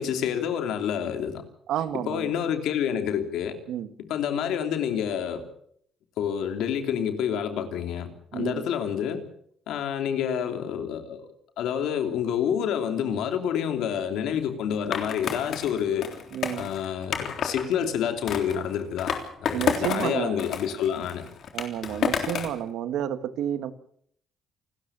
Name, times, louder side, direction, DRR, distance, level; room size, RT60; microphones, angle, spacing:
voice 1, 0.0-1.4 2.1-3.6 4.0-5.4 6.2-9.2 9.7-11.3 11.6-16.1 16.5-19.1 19.4-21.2, left 8 dB, 85° left, 7 dB, 3.0 m, -28 dB
voice 2, 1.7-2.3 3.7-3.9 8.3-8.7 16.3-16.7 19.5-20.4 21.5-23.7, right 10 dB, 85° right, 12 dB, 1.5 m, -30 dB
Skateboard, 14.9-17.6 18.3-20.1 20.4-22.6, left 7 dB, 65° left, 3.6 m, -30 dB
28.0 x 13.5 x 7.3 m, 0.65 s
cardioid pair, 90°, 0 cm